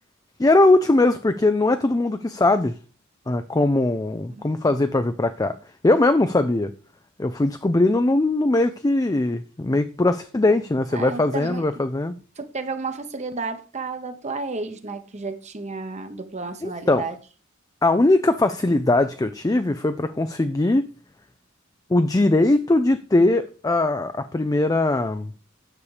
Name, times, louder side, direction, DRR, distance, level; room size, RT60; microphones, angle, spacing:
voice 1, 0.4-2.8 3.3-5.6 5.8-6.7 7.2-12.1 16.6-17.0 17.8-20.9 21.9-25.3, left 2 dB, 15° left, 9 dB, 0.4 m, -20 dB
voice 2, 10.9-11.6 12.4-17.2, right 3 dB, 35° right, 8 dB, 1.0 m, -32 dB
9.9 x 6.7 x 4.9 m, 0.36 s
head